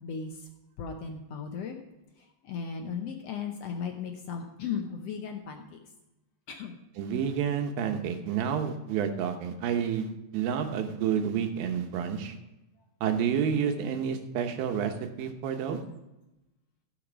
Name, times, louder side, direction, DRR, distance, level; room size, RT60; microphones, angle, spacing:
voice 1, 0.0-0.5 0.8-1.8 2.2-5.8 6.5-6.8 12.8-12.9, left 6 dB, 75° left, 4 dB, 1.4 m, -36 dB
voice 2, 7.0-12.3 13.0-15.8, right 7 dB, 90° right, 6 dB, 2.8 m, -29 dB
16.0 x 6.5 x 5.0 m, 0.96 s
omnidirectional pair, 4.1 m